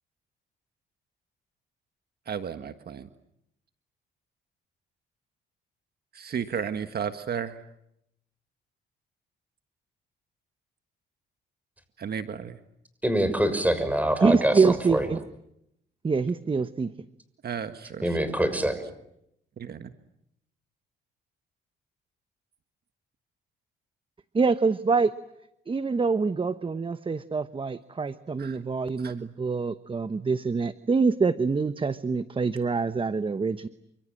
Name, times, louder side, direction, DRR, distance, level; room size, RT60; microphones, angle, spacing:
voice 1, 2.3-3.1 6.1-7.6 12.0-12.6 17.4-18.2 19.7-19.8 28.4-28.6 29.0-29.1, right 7 dB, 55° right, 8 dB, 1.6 m, -33 dB
voice 2, 13.0-15.1 18.0-18.8, right 1 dB, 10° right, 10 dB, 6.3 m, -25 dB
voice 3, 14.2-15.2 16.0-16.9 24.3-25.1 25.7-33.7, right 4 dB, 25° right, 12 dB, 1.0 m, -25 dB
29.0 x 25.5 x 7.7 m, 0.80 s
cardioid pair, 90°, 20 cm